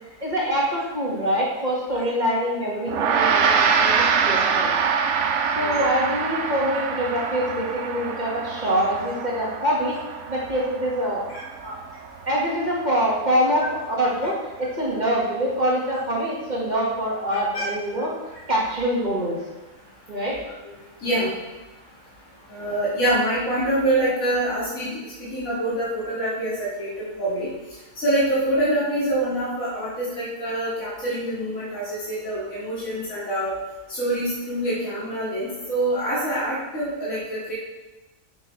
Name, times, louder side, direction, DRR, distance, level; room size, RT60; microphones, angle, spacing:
voice 1, 0.2-4.7 5.4-10.0 10.3-11.3 11.6-11.8 12.3-18.1 18.5-19.4 20.1-20.4, equal, 35° right, -5 dB, 1.9 m, -25 dB
Gong, 2.9-12.4, right 6 dB, 65° right, 0.9 m, -24 dB
voice 2, 17.3-17.6 20.6-20.7 21.0-21.3 22.5-27.5 27.9-33.5 33.9-37.5, right 1 dB, 80° left, -10 dB, 3.0 m, -25 dB
10.0 x 7.6 x 3.3 m, 1.1 s
omnidirectional pair, 1.4 m